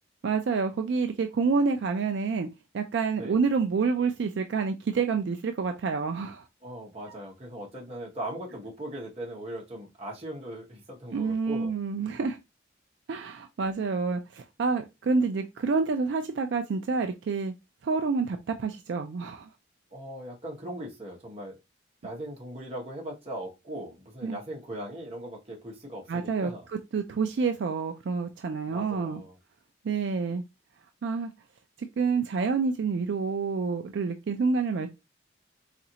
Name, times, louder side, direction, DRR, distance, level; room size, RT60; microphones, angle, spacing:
voice 1, 0.2-2.5 2.7-6.5 11.1-12.4 13.1-17.5 17.8-19.5 24.2-24.4 26.1-26.5 26.9-29.2 29.8-30.4 31.0-31.3 32.0-34.9, right 4 dB, 65° right, 0.3 m, -28 dB
voice 2, 6.6-11.7 19.9-21.6 22.0-26.7 28.7-29.4, right 1 dB, 30° right, 1.0 m, -39 dB
4.0 x 2.5 x 2.8 m
head